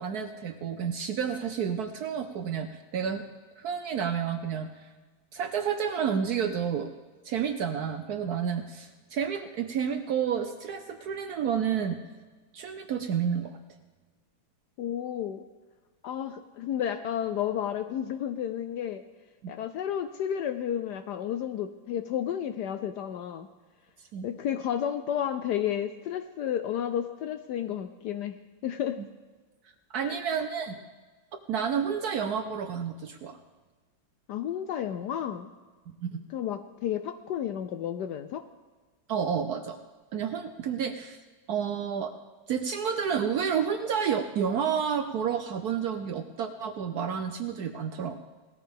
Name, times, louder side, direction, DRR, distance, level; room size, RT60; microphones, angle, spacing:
voice 1, 0.0-3.2 3.6-4.9 5.3-6.9 7.2-12.0 12.5-13.6 19.4-19.5 24.1-24.3 29.9-30.8 31.5-33.4 36.0-36.2 39.1-39.8 40.1-41.2 41.5-42.1 42.5-48.2, right 7 dB, 70° right, 8 dB, 0.9 m, -30 dB
voice 2, 14.8-15.4 16.0-19.0 19.5-23.5 24.2-28.4 28.6-29.0 30.0-30.2 34.3-35.5 36.3-38.4, left 10 dB, 75° left, 9 dB, 1.0 m, -32 dB
18.5 x 13.5 x 3.5 m, 1.4 s
omnidirectional pair, 2.2 m